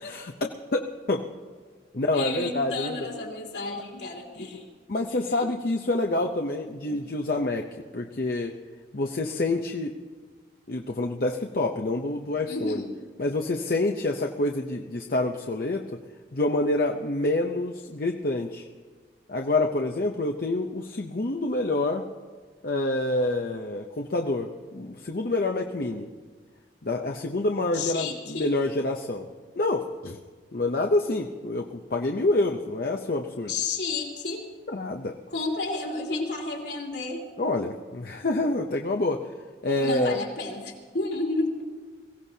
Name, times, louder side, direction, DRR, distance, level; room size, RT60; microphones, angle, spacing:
voice 1, 0.0-1.2 1.9-3.1 4.4-4.5 4.9-8.6 8.9-9.9 10.7-12.8 13.2-16.0 16.3-18.7 19.3-22.1 22.6-26.1 26.8-29.3 29.6-30.2 30.5-33.5 34.7-35.2 37.4-39.3 39.6-40.2, left 2 dB, 55° left, 2 dB, 0.7 m, -27 dB
voice 2, 2.1-4.7 5.4-5.5 6.8-7.0 12.4-12.9 27.7-28.5 33.5-34.4 35.3-37.2 39.7-41.5, left 3 dB, 75° left, -2 dB, 3.0 m, -31 dB
23.0 x 16.5 x 2.8 m, 1.5 s
head